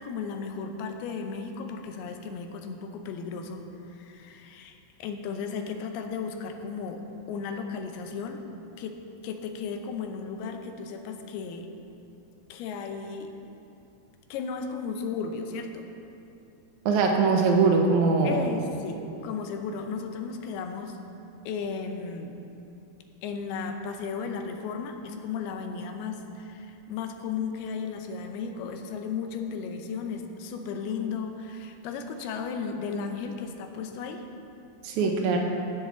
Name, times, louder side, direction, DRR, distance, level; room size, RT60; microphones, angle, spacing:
voice 1, 0.0-3.6 3.9-8.4 8.8-11.7 12.5-13.3 14.3-15.9 18.2-21.0 21.4-22.3 23.2-34.3 35.0-35.1, left 5 dB, 80° left, 5 dB, 2.8 m, -35 dB
voice 2, 16.8-18.5 34.8-35.4, right 4 dB, 85° right, 2 dB, 1.7 m, -22 dB
16.0 x 9.8 x 3.8 m, 2.8 s
omnidirectional pair, 4.6 m